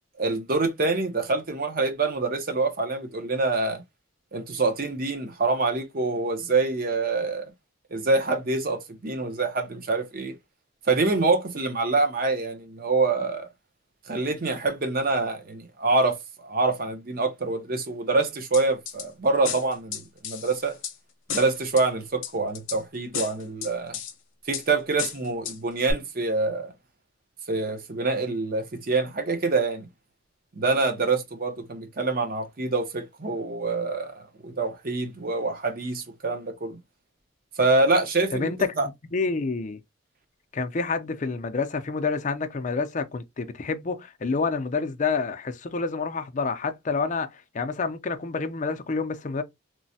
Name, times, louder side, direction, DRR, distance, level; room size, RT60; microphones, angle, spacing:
voice 1, 0.2-3.8 4.3-7.5 7.9-10.4 10.9-13.5 14.1-20.8 21.3-24.0 24.5-26.7 27.5-29.9 30.6-34.1 34.4-36.8 37.6-38.9, right 3 dB, 50° right, 0.7 m, -26 dB
sound 1, 18.5-19.1 19.4-20.9 21.3-21.8 22.2-22.8 23.1-24.1 24.5-24.7 25.0-25.6 25.9-26.0, left 8 dB, 75° left, 0.7 m, -33 dB
voice 2, 38.3-39.8 40.5-49.4, left 4 dB, 40° left, 0.5 m, -28 dB
3.0 x 2.1 x 2.7 m
head